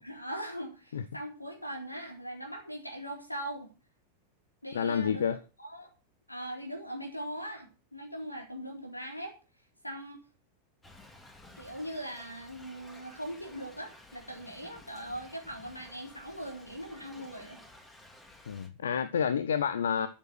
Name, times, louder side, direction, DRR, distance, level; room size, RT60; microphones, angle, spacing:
voice 1, 0.0-3.7 4.6-5.9 6.3-9.4 9.8-10.3 11.6-17.6, equal, 85° left, 3.7 m, -40 dB
voice 2, 4.7-5.4 18.5-20.1, left 7 dB, 65° left, 0.8 m, -29 dB
Thunder / Rain, 10.8-18.7, left 1 dB, 10° left, 2.8 m, -54 dB
13.0 x 7.6 x 6.1 m
figure-of-eight pair, 90°, 0 cm